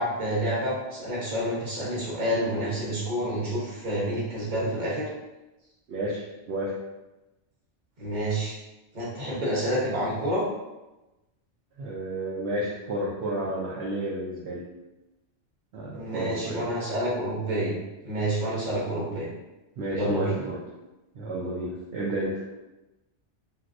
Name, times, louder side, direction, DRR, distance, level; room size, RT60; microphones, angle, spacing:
voice 1, 0.0-5.1 8.0-8.5 8.9-10.4 15.9-17.7 18.0-19.3 19.9-20.3, right 1 dB, 40° right, -6 dB, 1.1 m, -28 dB
voice 2, 5.9-6.7 11.8-14.6 15.7-16.7 19.8-20.6 21.1-22.4, right 1 dB, 65° right, -6 dB, 0.8 m, -31 dB
3.2 x 2.6 x 2.5 m, 1.0 s
omnidirectional pair, 1.2 m